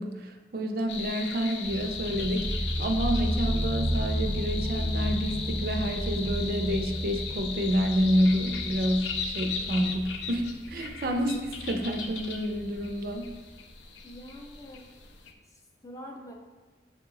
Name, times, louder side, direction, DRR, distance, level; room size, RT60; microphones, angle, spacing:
voice 1, 0.0-13.3, equal, 50° right, 4 dB, 0.4 m, -29 dB
sound 1, 0.9-15.3, left 5 dB, 70° left, 0.5 m, -38 dB
sound 2, 1.6-13.0, equal, 85° left, 1.2 m, -33 dB
voice 2, 14.0-14.9 15.5-16.3, equal, 20° left, 1 dB, 0.5 m, -45 dB
6.8 x 2.9 x 2.7 m, 1.3 s
head